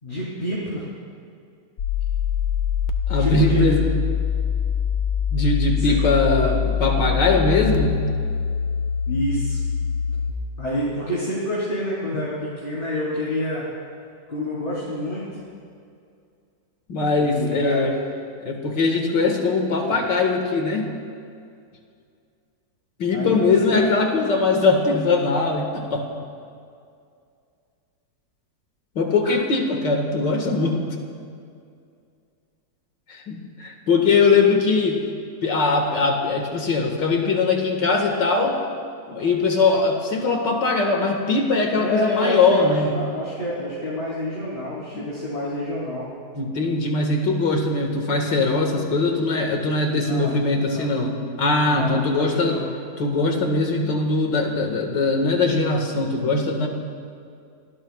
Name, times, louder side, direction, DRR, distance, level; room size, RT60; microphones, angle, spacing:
voice 1, 0.0-0.8 3.2-3.6 5.8-5.9 9.1-9.6 10.6-13.7 14.3-15.2 17.3-17.9 23.1-23.4 23.7-23.8 41.8-46.1 49.9-50.9 51.7-52.7, left 1 dB, 30° left, -10 dB, 4.0 m, -28 dB
sound 1, 1.8-10.3, left 7 dB, 65° left, 1.3 m, -24 dB
voice 2, 3.1-3.9 5.3-8.0 12.1-12.2 16.9-17.9 18.4-20.9 23.0-26.1 29.0-30.8 33.1-35.0 35.4-38.6 39.1-43.0 46.3-52.6 53.0-56.7, left 3 dB, 85° left, 2 dB, 2.5 m, -21 dB
28.0 x 18.5 x 2.4 m, 2.3 s
omnidirectional pair, 1.9 m